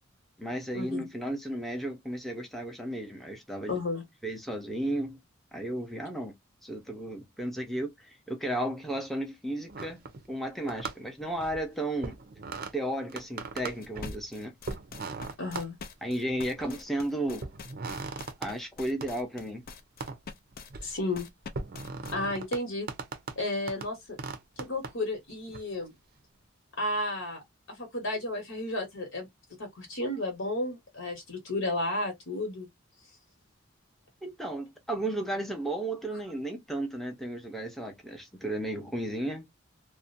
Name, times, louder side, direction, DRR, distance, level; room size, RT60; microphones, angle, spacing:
voice 1, 0.4-3.8 4.2-5.2 5.5-6.3 6.6-10.0 10.3-12.2 12.7-14.5 16.0-17.4 18.4-19.6 34.2-39.5, right 1 dB, ahead, 0.6 m, -34 dB
voice 2, 3.7-4.0 15.4-15.7 20.8-21.3 22.1-22.9 23.4-24.2 24.6-25.9 26.8-27.4 27.7-29.3 29.6-32.7, left 2 dB, 70° left, 1.1 m, -32 dB
sound 1, 9.7-10.4 10.7-11.7 12.0-12.7 13.1-14.2 14.7-15.7 16.3-16.9 17.4-18.5 19.0-19.1 20.0-20.2 20.5-20.9 21.5-22.6 22.9-23.4 23.7-23.9 24.2-24.9 25.5-25.6, right 4 dB, 50° right, 0.5 m, -38 dB
sound 2, 13.8-22.1, left 5 dB, 45° left, 0.4 m, -45 dB
2.5 x 2.1 x 2.5 m
head